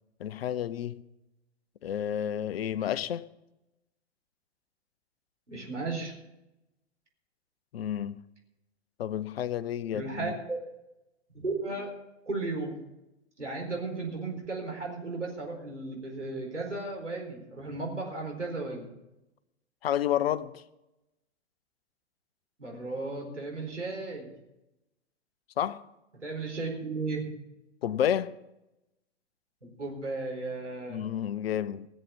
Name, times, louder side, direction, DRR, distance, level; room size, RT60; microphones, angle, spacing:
voice 1, 0.2-1.0 1.8-3.3 7.7-8.2 9.0-10.3 19.8-20.6 25.6-25.8 27.8-28.4 30.9-31.9, left 10 dB, 60° left, 0.8 m, -30 dB
voice 2, 5.5-6.1 9.9-10.6 11.3-11.9 12.3-12.8 13.4-18.9 22.6-24.3 26.1-27.3 29.6-31.0, right 3 dB, 90° right, 4.6 m, -35 dB
17.0 x 7.6 x 7.2 m
figure-of-eight pair, 105°, 34 cm